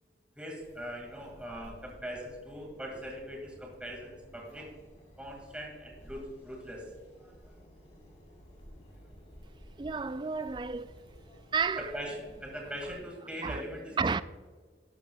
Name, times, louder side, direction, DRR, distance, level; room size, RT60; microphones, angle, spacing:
voice 1, 0.4-4.7 5.2-6.9 11.8-14.2, equal, 5° right, 2.0 m, -41 dB
sound 1, 0.6-12.9, equal, 35° left, 2.5 m, -54 dB
voice 2, 9.8-10.9 11.5-11.9 13.4-13.6 14.0-14.2, right 5 dB, 25° right, 0.3 m, -31 dB
12.5 x 11.0 x 2.3 m
head